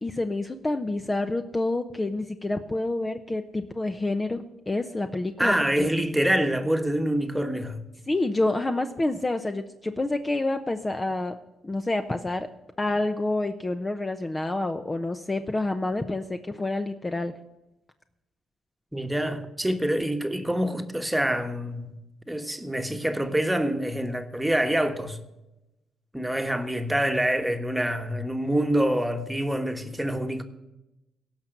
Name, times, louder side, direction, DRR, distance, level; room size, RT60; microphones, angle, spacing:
voice 1, 0.0-5.5 5.8-5.9 8.1-11.3 11.6-12.5 12.8-17.3, left 2 dB, 20° left, 0.8 m, -28 dB
voice 2, 5.4-7.8 18.9-21.9 22.3-25.2 26.1-30.4, right 1 dB, 5° right, 1.4 m, -26 dB
17.5 x 5.9 x 7.9 m
cardioid pair, 90°, 0 cm